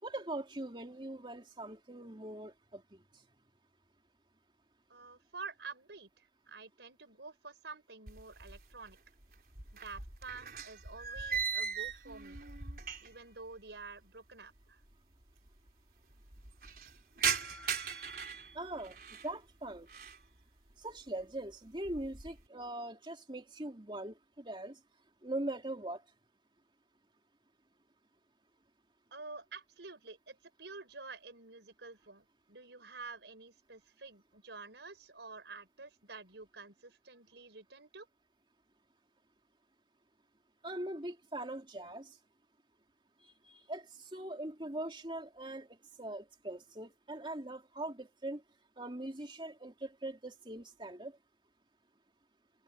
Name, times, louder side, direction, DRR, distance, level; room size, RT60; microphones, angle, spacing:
voice 1, 0.0-3.0 18.5-19.0 19.2-19.9 20.8-24.8 25.2-26.0 40.6-42.2 43.2-48.4 48.8-51.2, right 1 dB, 30° right, 3.0 m, -42 dB
voice 2, 4.9-9.0 9.8-12.4 13.0-14.8 29.1-38.1, right 4 dB, 80° right, 4.8 m, -49 dB
sound 1, 8.1-8.9 9.2-13.3 13.6-13.7 14.6-14.7 14.8-14.9 15.2-15.7 16.1-19.3 19.7-20.3 20.7-21.1 21.5-22.4, right 6 dB, 55° right, 4.2 m, -39 dB
head